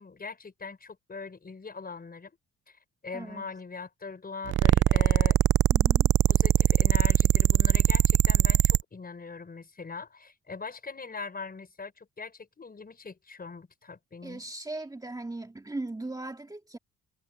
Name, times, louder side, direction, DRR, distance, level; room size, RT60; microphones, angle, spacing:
voice 1, 0.0-2.4 2.7-2.8 3.0-5.4 6.3-14.4, left 4 dB, 30° left, 5.4 m, -41 dB
voice 2, 3.1-3.5 5.7-6.1 14.2-16.8, right 2 dB, 10° right, 2.1 m, -38 dB
sound 1, 4.5-8.8, right 12 dB, 45° right, 0.4 m, -21 dB
cardioid pair, 90°, 30 cm